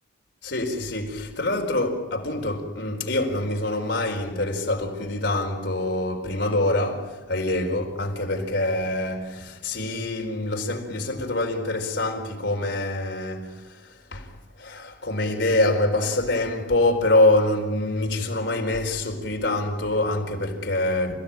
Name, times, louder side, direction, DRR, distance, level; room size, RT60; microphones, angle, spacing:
voice 1, 0.4-21.2, left 2 dB, 65° left, 4.4 m, -25 dB
29.5 x 17.0 x 9.0 m
head